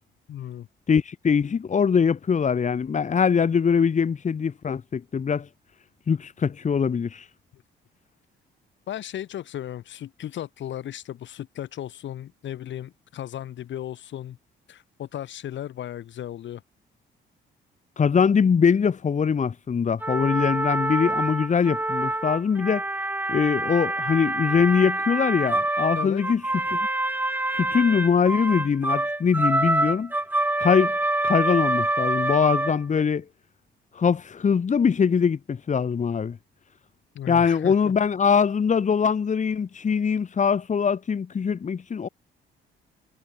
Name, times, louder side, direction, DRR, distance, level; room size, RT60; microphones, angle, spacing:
voice 1, 0.3-0.7 7.5-7.6 8.9-14.4 14.7-16.6 26.0-26.2 37.1-37.7, left 11 dB, 70° left, 2.1 m, -35 dB
voice 2, 0.9-5.5 6.1-7.2 18.0-22.8 23.3-26.4 26.7-26.9 27.5-30.1 30.6-31.0 31.2-33.2 33.9-36.4 37.3-42.1, left 6 dB, 40° left, 1.5 m, -22 dB
sound 1, 20.0-33.0, right 2 dB, 10° right, 1.0 m, -26 dB
cardioid pair, 90°, 20 cm